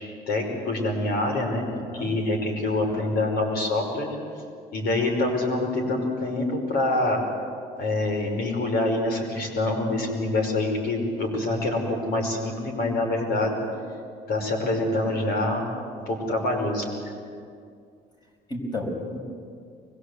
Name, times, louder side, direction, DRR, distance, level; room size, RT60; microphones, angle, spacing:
voice 1, 0.3-1.6 1.9-4.2 4.7-7.2 7.8-13.6 14.3-15.7 16.1-17.1, left 2 dB, 65° left, 2 dB, 5.7 m, -26 dB
voice 2, 1.7-2.1 2.9-3.1 18.5-19.2, left 1 dB, 25° left, 1 dB, 5.6 m, -32 dB
24.0 x 21.5 x 8.3 m, 2.3 s
cardioid pair, 110°, 17 cm